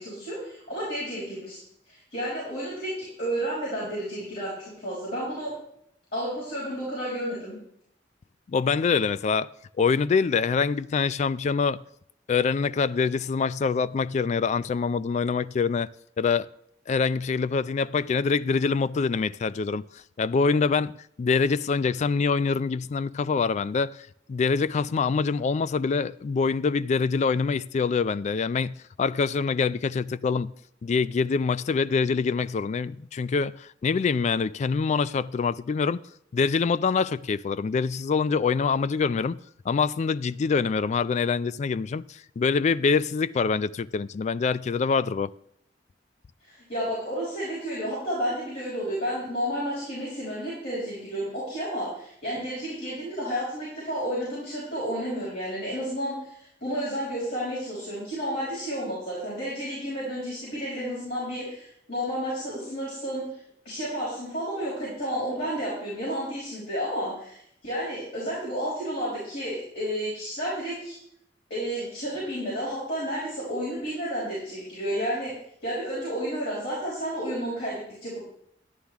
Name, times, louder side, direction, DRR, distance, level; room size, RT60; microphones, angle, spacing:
voice 1, 0.0-1.6 1.9-5.5 6.1-7.5 46.4-63.3 63.6-71.0 71.5-75.3 75.6-78.2, equal, 65° left, 5.9 m, -31 dB
voice 2, 8.5-9.5 9.8-11.8 12.3-15.9 16.2-16.5 16.9-19.8 20.2-20.9 21.2-24.0 24.3-28.7 29.0-30.5 30.8-36.0 36.3-39.4 39.7-45.3, left 5 dB, 40° left, 0.3 m, -25 dB
13.0 x 11.5 x 3.5 m
head